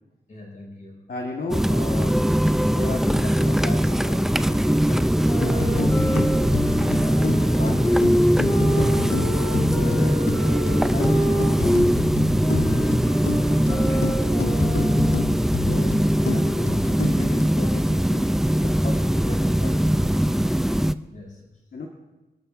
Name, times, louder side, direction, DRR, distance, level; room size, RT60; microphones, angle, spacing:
voice 1, 0.3-1.1 11.1-11.3 15.4-15.8 21.1-21.7, left 2 dB, 50° left, -3 dB, 5.9 m, -45 dB
voice 2, 1.1-2.3 2.7-6.3 6.8-10.1 10.8-12.1 13.4-14.6 15.7-15.9 16.2-18.3 18.5-20.1 21.7-21.9, left 3 dB, 65° left, 0 dB, 1.4 m, -36 dB
sound 1, 1.5-20.9, equal, ahead, 0.3 m, -21 dB
sound 2, 5.3-12.0 12.4-15.4, equal, 15° left, 1.6 m, -27 dB
sound 3, 5.4-17.4, left 10 dB, 85° left, 0.4 m, -33 dB
27.0 x 12.5 x 2.5 m, 1.1 s
wide cardioid pair, 125°, 17 cm